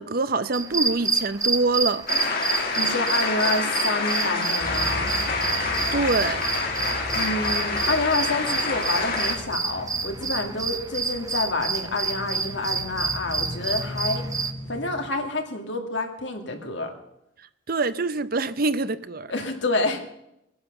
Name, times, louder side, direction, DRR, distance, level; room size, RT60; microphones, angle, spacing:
voice 1, 0.0-2.1 5.9-6.4 17.7-19.3, right 3 dB, 50° right, 0.7 m, -25 dB
sound 1, 0.5-14.5, right 4 dB, 20° right, 0.8 m, -29 dB
sound 2, 2.1-9.3, left 4 dB, 50° left, 2.7 m, -27 dB
voice 2, 2.8-5.1 7.1-14.2 14.7-16.9 19.3-20.0, left 2 dB, 70° left, 2.4 m, -28 dB
sound 3, 4.6-15.1, equal, 20° left, 4.3 m, -38 dB
20.0 x 10.0 x 6.8 m
head